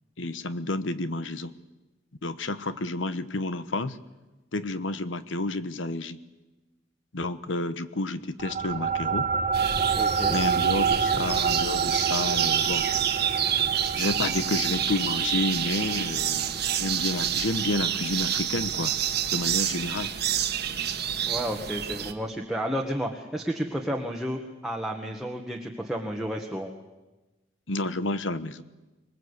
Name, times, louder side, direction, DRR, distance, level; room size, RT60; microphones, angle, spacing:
voice 1, 0.2-1.5 2.2-4.0 4.5-6.2 7.1-9.3 10.3-12.9 14.0-18.9 19.3-20.1 27.7-28.6, left 2 dB, 75° left, 13 dB, 1.1 m, -30 dB
sound 1, 8.4-19.2, right 6 dB, 40° right, 0.7 m, -29 dB
sound 2, 9.5-22.1, right 9 dB, 55° right, 1.5 m, -28 dB
voice 2, 9.9-10.4 21.2-26.7, equal, ahead, 0 dB, 1.5 m, -31 dB
25.5 x 20.0 x 8.2 m, 1.1 s
head